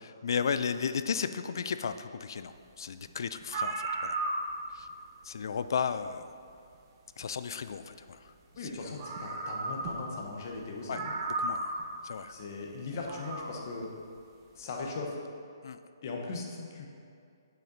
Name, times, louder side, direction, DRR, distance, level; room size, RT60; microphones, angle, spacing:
voice 1, 0.0-4.2 4.7-4.9 5.2-6.3 7.2-8.3 8.6-9.0 10.9-11.0 11.4-11.7 12.0-12.3 15.6-15.8, left 6 dB, 65° left, 11 dB, 0.4 m, -34 dB
sound 1, 3.1-3.2 3.4-4.8 6.2-6.3 8.5-8.6 9.0-10.2 10.5-10.6 10.9-11.9 12.9-13.5, right 2 dB, 35° right, 1.1 m, -34 dB
voice 2, 8.6-11.1 12.3-13.9 14.5-15.2 16.0-16.9, left 3 dB, 45° left, 0 dB, 1.3 m, -39 dB
8.7 x 5.8 x 4.0 m, 2.4 s
hypercardioid pair, 145°, 2 cm